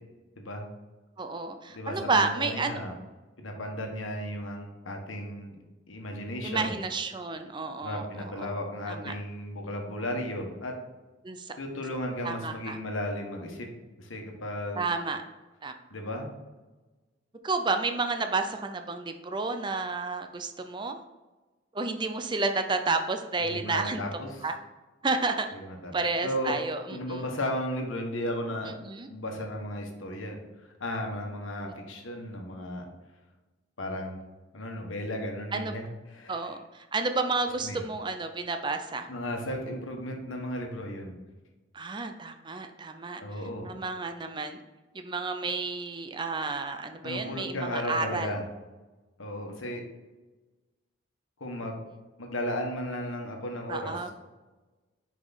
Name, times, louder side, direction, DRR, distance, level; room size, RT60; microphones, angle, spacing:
voice 1, 1.2-2.8 6.4-8.5 8.9-9.1 11.2-11.5 12.2-12.8 14.8-15.2 15.6-15.7 17.4-21.0 21.7-24.0 24.4-24.5 25.0-25.5 25.9-27.2 28.7-29.1 31.6-31.7 35.5-35.8 36.3-39.1 41.7-43.2 43.6-44.6 44.9-48.4 53.7-54.1, right 3 dB, 25° right, 7 dB, 0.5 m, -31 dB
voice 2, 1.7-2.9 3.4-5.6 5.9-6.8 7.8-10.8 11.6-13.7 14.0-14.9 15.9-16.3 23.4-24.4 25.5-25.9 26.2-26.5 26.9-28.7 29.1-30.4 30.8-32.9 33.8-34.2 34.5-36.5 37.6-37.8 39.1-41.1 43.2-43.7 47.0-48.4 49.2-49.8 51.4-51.8 52.2-53.9, left 1 dB, 90° left, 2 dB, 1.3 m, -35 dB
5.8 x 5.0 x 4.0 m, 1.2 s
head